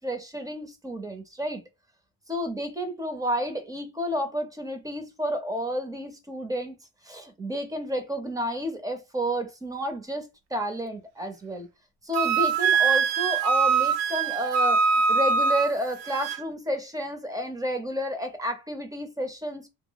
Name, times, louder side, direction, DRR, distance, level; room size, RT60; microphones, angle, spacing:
voice 1, 0.0-1.6 2.3-6.8 7.0-11.7 12.0-14.8 15.1-19.7, equal, 10° right, 0.6 m, -31 dB
Wind instrument woodwind instrument, 12.1-16.4, right 5 dB, 80° right, 0.7 m, -23 dB
3.1 x 2.1 x 3.8 m
cardioid pair, 115°, 47 cm